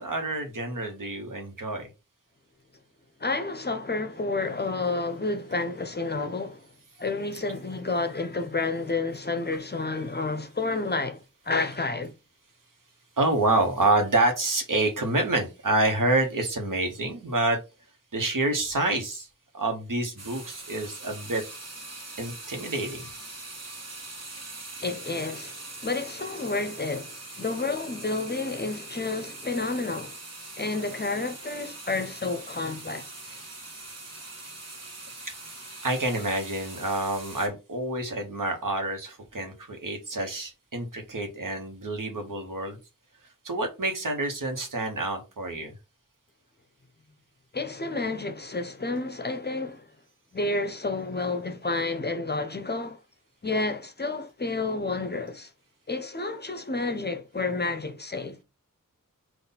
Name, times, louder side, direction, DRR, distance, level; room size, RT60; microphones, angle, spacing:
voice 1, 0.0-1.9 13.2-17.6 18.1-19.3 19.5-21.4 22.2-23.1 35.2-35.3 35.8-42.8 43.4-45.7, right 2 dB, 70° right, 1.2 m, -27 dB
voice 2, 3.2-6.7 7.0-12.1 24.8-30.2 30.6-33.4 47.5-49.9 50.3-53.0 53.4-55.5 55.9-58.4, left 3 dB, 30° left, 0.6 m, -30 dB
sound 1, 20.2-37.5, right 2 dB, 50° right, 1.3 m, -42 dB
3.8 x 2.5 x 4.1 m
wide cardioid pair, 50°, 33 cm